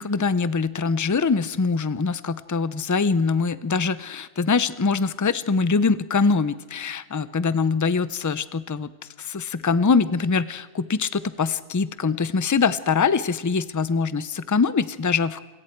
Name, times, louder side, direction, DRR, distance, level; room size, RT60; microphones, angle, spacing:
voice 1, 0.0-8.9 9.2-15.4, left 4 dB, 25° left, 15 dB, 0.4 m, -23 dB
27.5 x 22.0 x 4.5 m, 1.4 s
omnidirectional pair, 1.1 m